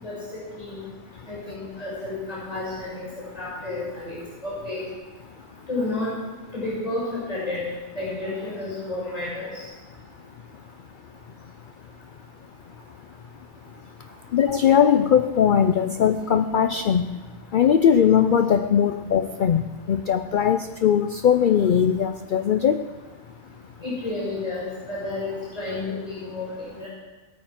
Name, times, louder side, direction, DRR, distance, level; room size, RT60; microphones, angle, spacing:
voice 1, 1.3-4.8 5.7-6.1 6.5-9.6 23.8-26.9, left 2 dB, 25° left, -7 dB, 6.2 m, -31 dB
voice 2, 14.3-17.1 17.5-22.9, left 8 dB, 65° left, 9 dB, 0.5 m, -20 dB
19.0 x 8.9 x 5.9 m, 1.2 s
omnidirectional pair, 1.4 m